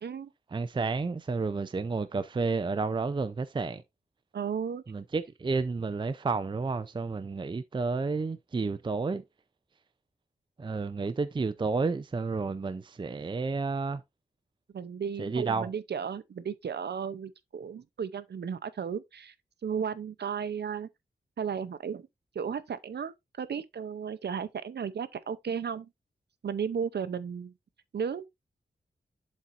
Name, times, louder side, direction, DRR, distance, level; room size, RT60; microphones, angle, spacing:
voice 1, 0.5-3.8 4.9-9.2 10.6-14.0 15.2-15.7, right 4 dB, 25° right, 0.5 m, -31 dB
voice 2, 4.3-4.8 14.7-19.3 19.6-20.9 21.4-22.1 22.3-23.1 23.4-25.9 26.4-27.5 27.9-28.2, right 7 dB, 75° right, 0.6 m, -34 dB
11.5 x 4.2 x 2.5 m
wide cardioid pair, 120°, 17 cm